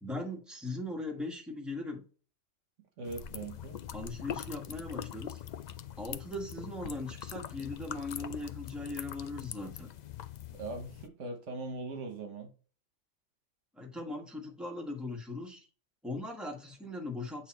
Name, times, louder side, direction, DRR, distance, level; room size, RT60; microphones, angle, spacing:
voice 1, 0.0-2.0 3.9-5.4 6.0-9.9 13.7-15.7 16.0-17.5, left 2 dB, ahead, 1.5 m, -39 dB
voice 2, 3.0-3.8 10.5-12.5, right 3 dB, 70° right, 1.2 m, -40 dB
sound 1, 3.1-11.1, left 10 dB, 80° left, 0.3 m, -43 dB
8.3 x 3.0 x 4.3 m
omnidirectional pair, 1.3 m